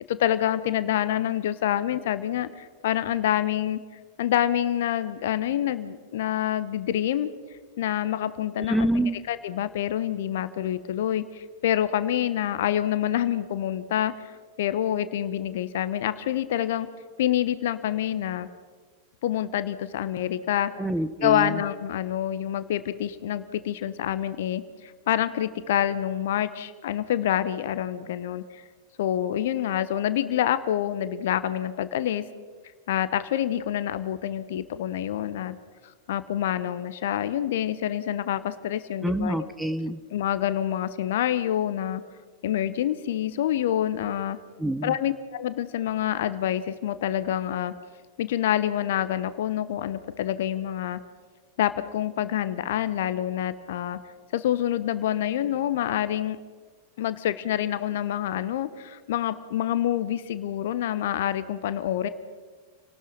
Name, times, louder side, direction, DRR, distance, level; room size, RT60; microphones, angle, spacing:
voice 1, 0.0-3.8 4.2-7.3 7.8-8.9 9.3-16.9 17.2-18.5 19.2-20.7 21.2-28.6 29.0-32.2 32.9-35.6 36.1-39.5 40.1-42.0 42.4-44.4 44.8-47.7 48.2-51.0 51.6-54.0 54.3-56.4 57.0-62.1, left 11 dB, 55° left, 13 dB, 1.2 m, -27 dB
voice 2, 8.7-9.1 20.8-21.6 39.0-40.0 44.6-44.9, right 1 dB, 5° right, 11 dB, 1.1 m, -26 dB
29.0 x 19.0 x 5.4 m, 1.4 s
figure-of-eight pair, 90°, 0 cm